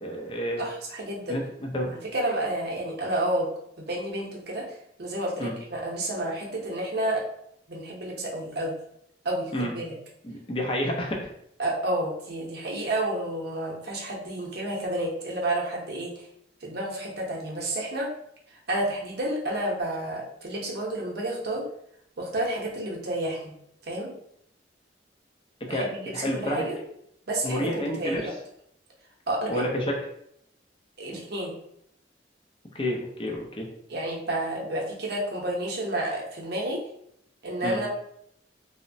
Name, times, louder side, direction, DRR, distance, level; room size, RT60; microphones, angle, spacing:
voice 1, 0.0-0.6 1.3-1.9 5.4-5.5 9.5-9.7 10.2-11.3 25.7-26.6 27.4-28.3 29.5-30.0 32.7-33.7 37.6-37.8, equal, 30° left, 0 dB, 0.5 m, -29 dB
voice 2, 0.6-1.4 1.9-3.5 3.8-7.2 7.7-8.8 9.2-9.9 11.6-16.3 16.6-18.1 18.7-21.6 22.2-23.5 23.9-24.1 25.7-26.8 27.3-28.3 29.3-29.7 31.0-31.5 33.9-36.8 37.4-37.9, right 1 dB, 60° right, -2 dB, 0.7 m, -30 dB
3.0 x 2.0 x 2.6 m, 0.74 s
head